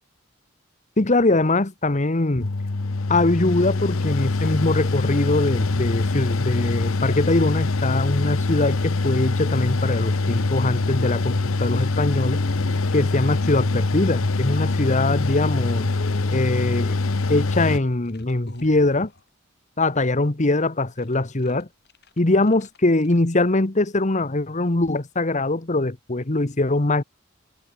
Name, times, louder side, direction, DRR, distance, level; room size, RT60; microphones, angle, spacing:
voice 1, 1.0-2.5 3.1-12.4 12.9-15.9 16.3-17.0 17.3-19.1 19.8-21.7 22.2-27.0, left 2 dB, 35° left, 1.3 m, -22 dB
Mechanical fan, 2.4-17.8, left 3 dB, 85° left, 0.9 m, -24 dB
sound 1, 5.5-8.2 8.8-9.0 9.3-9.5 9.8-10.1 10.4-14.9 15.2-19.2 21.0-21.1 21.4-21.6 21.9-22.2 22.5-23.2, left 1 dB, 55° left, 7.6 m, -41 dB
head